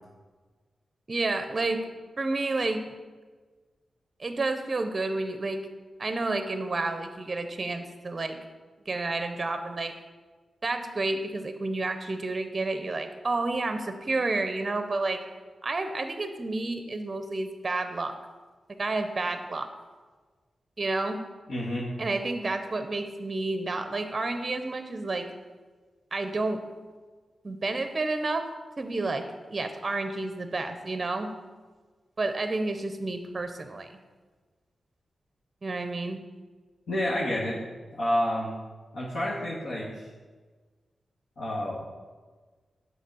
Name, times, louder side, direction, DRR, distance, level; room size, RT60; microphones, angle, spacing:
voice 1, 1.1-1.9 2.2-2.8 4.2-5.7 6.0-8.4 8.9-9.9 10.6-15.2 15.6-18.1 18.8-19.7 20.8-21.2 22.0-25.3 26.1-26.6 27.4-28.5 28.8-29.2 29.5-31.3 32.2-33.9 35.6-36.2, right 2 dB, 30° right, 7 dB, 0.6 m, -30 dB
voice 2, 21.5-21.9 36.9-37.6 37.9-38.5 38.9-40.1 41.4-41.8, left 1 dB, 75° left, -6 dB, 1.5 m, -29 dB
8.4 x 4.0 x 6.1 m, 1.4 s
wide cardioid pair, 125°, 0 cm